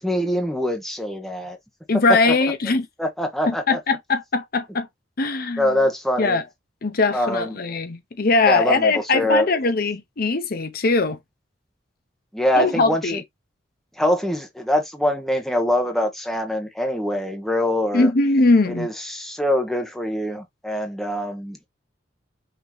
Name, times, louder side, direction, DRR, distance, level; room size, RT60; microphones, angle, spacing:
voice 1, 0.0-1.6 2.1-2.4 3.0-3.8 5.6-6.4 7.1-7.6 8.4-9.5 12.3-13.2 14.0-18.1 18.7-21.7, left 1 dB, ahead, 1.0 m, -24 dB
voice 2, 1.9-2.9 3.5-4.9 5.2-5.7 6.2-6.4 6.8-11.2 12.6-13.2 17.9-18.9, left 3 dB, 55° left, 0.7 m, -20 dB
5.9 x 2.9 x 3.1 m
head